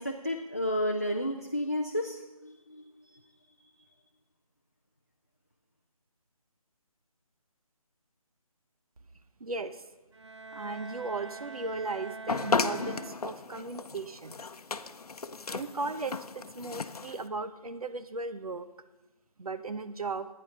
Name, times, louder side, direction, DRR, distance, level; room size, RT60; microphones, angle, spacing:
voice 1, 0.0-2.8 3.1-3.2, equal, 25° left, 2 dB, 0.4 m, -32 dB
voice 2, 9.4-9.8 10.5-14.4 15.5-18.7 19.4-20.3, right 3 dB, 75° right, 11 dB, 1.0 m, -36 dB
Bowed string instrument, 10.1-13.6, right 3 dB, 50° right, 0.7 m, -44 dB
sound 1, 12.3-17.3, left 4 dB, 85° left, 0.8 m, -34 dB
12.0 x 9.7 x 5.5 m, 1.1 s
figure-of-eight pair, 180°, 19 cm